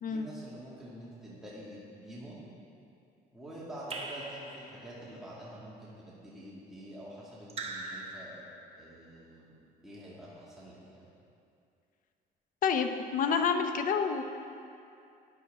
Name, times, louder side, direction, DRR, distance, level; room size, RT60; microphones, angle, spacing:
voice 1, 0.1-2.4 3.3-8.4 8.8-9.5 9.8-11.0, right 1 dB, ahead, -8 dB, 2.3 m, -47 dB
Raindrop / Drip, 3.9-5.1 7.5-8.9, right 3 dB, 35° right, 1.2 m, -42 dB
voice 2, 12.6-14.2, left 6 dB, 55° left, 7 dB, 0.8 m, -28 dB
12.5 x 9.9 x 3.7 m, 2.5 s
cardioid pair, 110°, 17 cm